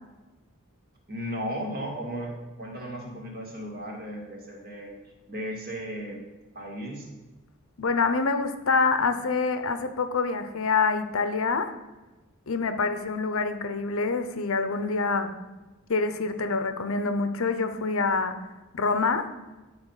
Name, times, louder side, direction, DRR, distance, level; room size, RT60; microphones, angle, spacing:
voice 1, 1.1-4.9 5.3-6.2 6.5-7.1, equal, 45° right, -1 dB, 1.9 m, -35 dB
voice 2, 7.8-11.7 12.5-15.3 15.9-18.4 18.7-19.3, left 4 dB, 70° left, 9 dB, 0.8 m, -26 dB
11.5 x 4.1 x 5.7 m, 1.2 s
head